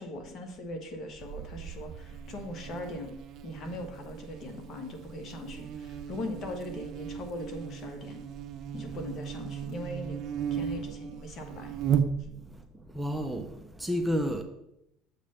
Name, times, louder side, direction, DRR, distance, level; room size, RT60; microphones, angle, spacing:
voice 1, 0.0-3.1 3.4-8.2 8.7-10.2 10.5-11.7, left 1 dB, 45° left, 1.3 m, -40 dB
Buzz, 1.2-12.6, right 8 dB, 50° right, 0.5 m, -36 dB
voice 2, 12.9-13.5 13.8-14.4, equal, 5° right, 0.6 m, -29 dB
7.3 x 3.2 x 5.6 m
supercardioid pair, 105°, 0 cm